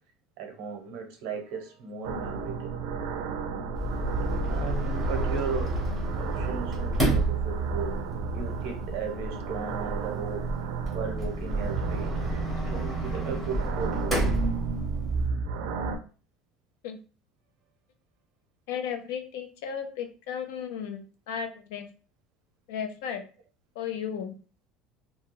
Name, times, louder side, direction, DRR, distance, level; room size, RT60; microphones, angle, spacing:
voice 1, 0.4-2.7 4.5-5.8 6.1-8.0 8.3-10.5 10.9-12.4 12.7-14.3, right 5 dB, 65° right, 4 dB, 0.8 m, -36 dB
sound 1, 2.0-16.0, right 4 dB, 85° right, 0.5 m, -32 dB
Sliding door, 3.7-15.3, right 2 dB, ahead, 0.9 m, -31 dB
voice 2, 18.7-21.9 22.7-23.2 23.8-24.3, left 8 dB, 90° left, 6 dB, 0.5 m, -34 dB
2.8 x 2.2 x 3.0 m, 0.36 s
cardioid pair, 180°, 0 cm